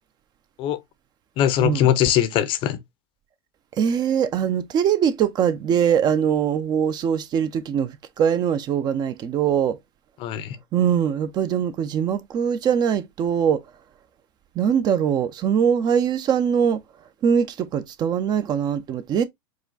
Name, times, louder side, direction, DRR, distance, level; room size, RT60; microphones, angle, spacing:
voice 1, 1.4-2.8 10.2-10.6, left 11 dB, 45° left, 0.6 m, -21 dB
voice 2, 3.8-9.8 10.7-13.6 14.6-16.8 17.2-19.2, right 8 dB, 35° right, 0.5 m, -22 dB
4.8 x 2.2 x 3.8 m
supercardioid pair, 115°, 13 cm